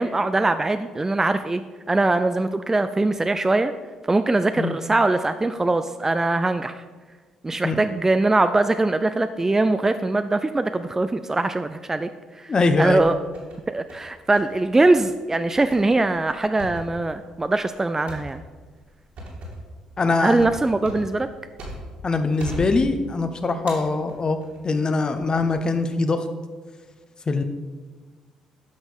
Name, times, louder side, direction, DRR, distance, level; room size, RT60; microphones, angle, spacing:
voice 1, 0.0-1.6 1.9-3.7 4.1-6.7 7.4-12.1 12.4-12.5 12.8-13.2 13.7-18.4 20.2-21.3, right 2 dB, 20° right, 10 dB, 0.5 m, -22 dB
voice 2, 12.5-13.0 20.0-20.5 22.0-24.4 24.6-26.3 27.3-27.4, left 3 dB, 35° left, 8 dB, 1.0 m, -22 dB
sound 1, 12.8-13.6 13.9-14.5 14.8-15.0 15.5-22.0 22.4-23.2 23.7-24.6 25.1-25.5, right 1 dB, 60° right, 2.9 m, -39 dB
10.5 x 6.3 x 5.2 m, 1.4 s
hypercardioid pair, 45°, 2 cm